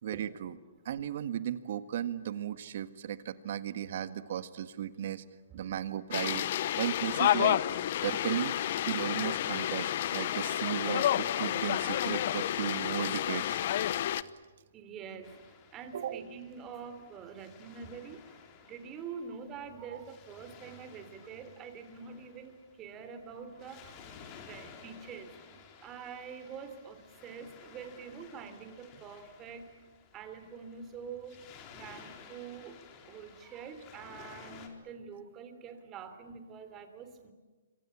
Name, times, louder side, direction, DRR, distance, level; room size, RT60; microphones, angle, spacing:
voice 1, 0.0-0.5 0.8-5.2 5.5-6.4 6.8-7.6 8.0-8.5 8.9-13.6 15.9-16.3 19.9-20.0, right 10 dB, 55° right, 12 dB, 1.6 m, -35 dB
sound 1, 6.1-14.2, left 12 dB, 50° left, 0.9 m, -30 dB
voice 2, 14.7-15.3 15.7-25.4 25.8-29.7 30.1-37.3, right 6 dB, 20° right, 9 dB, 3.4 m, -46 dB
Waves surf, 15.2-34.7, left 6 dB, 30° left, 4.2 m, -55 dB
27.0 x 24.5 x 8.8 m, 1.3 s
hypercardioid pair, 145°, 0 cm